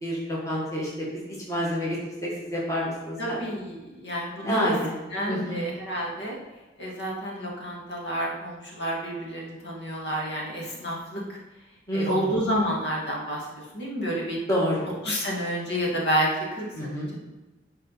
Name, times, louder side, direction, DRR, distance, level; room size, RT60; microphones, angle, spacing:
voice 1, 0.0-3.4 4.4-4.9 5.3-5.6 11.9-12.3 14.5-14.9 16.7-17.2, equal, 15° left, -5 dB, 1.7 m, -28 dB
voice 2, 3.2-4.7 5.1-6.3 6.8-11.4 11.9-14.4 15.0-17.2, equal, 70° left, -4 dB, 2.1 m, -29 dB
11.5 x 4.1 x 4.1 m, 1.2 s
head